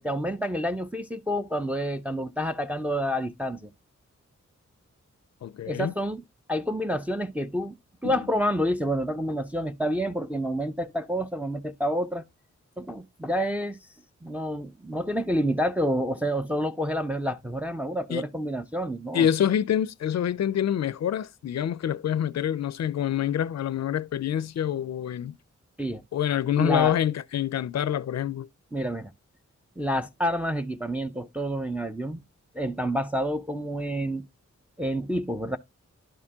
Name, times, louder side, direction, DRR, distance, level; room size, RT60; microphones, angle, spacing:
voice 1, 0.0-3.7 5.7-7.8 8.0-12.2 12.8-13.8 14.2-19.3 25.8-26.0 26.6-27.0 28.7-29.1 29.8-32.2 32.5-34.3 34.8-35.6, equal, 5° right, 0.4 m, -28 dB
voice 2, 5.4-5.9 8.0-8.1 18.1-18.2 19.1-25.4 26.1-28.5, left 9 dB, 65° left, 0.4 m, -26 dB
11.0 x 4.3 x 2.8 m
wide cardioid pair, 75°, 29 cm